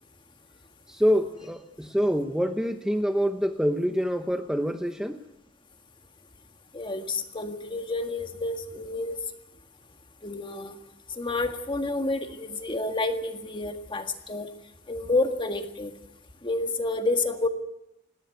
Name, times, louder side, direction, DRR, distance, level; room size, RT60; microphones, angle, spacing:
voice 1, 0.9-5.2, equal, 5° right, 6 dB, 0.9 m, -26 dB
voice 2, 6.7-9.2 10.2-10.8 11.2-14.5 14.9-15.9 16.4-17.5, left 2 dB, 25° left, 6 dB, 1.7 m, -29 dB
18.5 x 17.5 x 9.4 m, 0.84 s
head